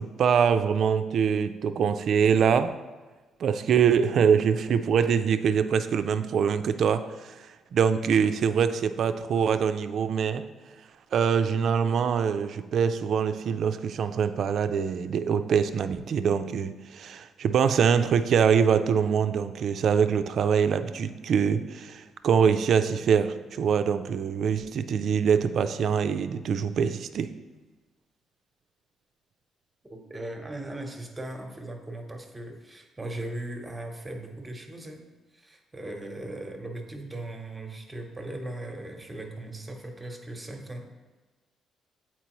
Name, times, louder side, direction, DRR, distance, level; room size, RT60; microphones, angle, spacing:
voice 1, 0.0-2.8 3.4-10.5 11.1-27.3, right 7 dB, 65° right, 10 dB, 0.4 m, -24 dB
voice 2, 29.9-41.0, right 1 dB, 15° right, 2 dB, 1.0 m, -38 dB
8.1 x 4.4 x 3.0 m, 1.3 s
cardioid pair, 90°, 0 cm